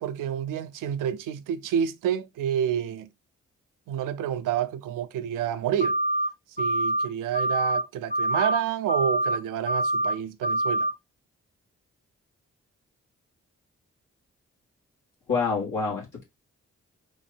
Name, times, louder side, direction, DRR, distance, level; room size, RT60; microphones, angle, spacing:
voice 1, 0.0-3.1 3.9-6.0 6.6-10.9, right 9 dB, 90° right, 0.5 m, -29 dB
sound 1, 5.8-6.3 6.6-7.1 7.3-7.8 8.1-8.6 8.9-9.4 9.7-10.1 10.4-10.9, right 1 dB, 35° left, 1.0 m, -25 dB
voice 2, 15.3-16.2, left 4 dB, 85° left, 2.3 m, -27 dB
4.5 x 2.8 x 4.3 m
supercardioid pair, 45°, 31 cm